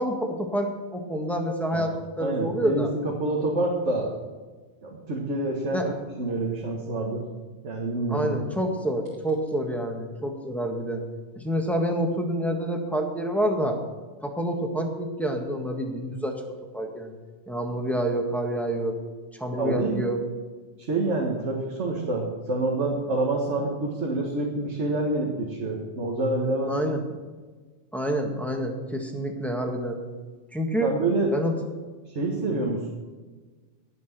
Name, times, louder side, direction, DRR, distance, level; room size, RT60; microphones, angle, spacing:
voice 1, 0.0-2.9 5.7-5.9 8.1-11.0 11.3-13.8 14.2-16.4 16.7-17.1 17.5-19.0 19.4-20.2 26.7-27.0 27.9-30.0 30.5-30.9 31.3-31.5 32.5-32.6, right 1 dB, ahead, 2 dB, 1.6 m, -27 dB
voice 2, 2.2-4.1 4.8-7.2 7.6-8.5 19.5-20.0 20.8-26.7 30.8-31.3 32.1-32.9, right 2 dB, 80° right, -2 dB, 1.9 m, -27 dB
17.5 x 6.1 x 6.0 m, 1.4 s
omnidirectional pair, 1.2 m